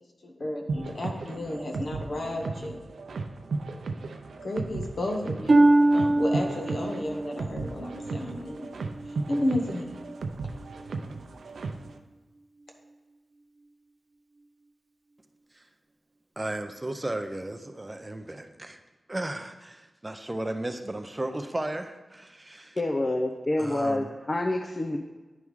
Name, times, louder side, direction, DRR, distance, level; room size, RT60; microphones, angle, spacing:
voice 1, 0.2-2.8 4.4-5.7 5.9-8.7 9.3-9.9, left 1 dB, 60° left, 2 dB, 1.1 m, -32 dB
sound 1, 0.7-12.0, right 3 dB, 90° right, 0.5 m, -36 dB
Harp, 5.5-9.2 9.8-10.2 10.8-10.9, right 2 dB, 45° right, 0.8 m, -24 dB
voice 2, 16.4-18.8 19.1-22.8 23.6-24.1, right 1 dB, 20° right, 7 dB, 0.4 m, -35 dB
voice 3, 22.8-25.0, left 2 dB, 35° left, 4 dB, 0.5 m, -27 dB
9.6 x 3.5 x 4.7 m, 1.2 s
wide cardioid pair, 85°, 0 cm